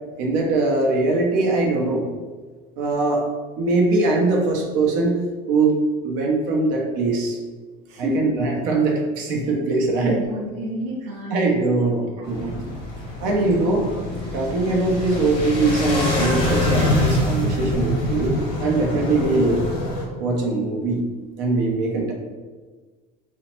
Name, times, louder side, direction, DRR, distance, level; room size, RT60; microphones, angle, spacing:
voice 1, 0.2-2.1 2.8-3.3 3.6-5.2 5.5-5.7 6.0-7.4 8.0-10.2 11.3-12.6 13.2-13.9 14.3-19.6 20.2-21.0 21.4-22.1, right 3 dB, 80° right, 0 dB, 0.6 m, -21 dB
voice 2, 7.9-8.6 10.0-11.7 12.0-12.7, right 1 dB, 40° right, -2 dB, 0.5 m, -30 dB
sound 1, 12.2-20.0, left 1 dB, 30° left, 0.7 m, -25 dB
2.8 x 2.0 x 3.0 m, 1.4 s
cardioid pair, 170°, 19 cm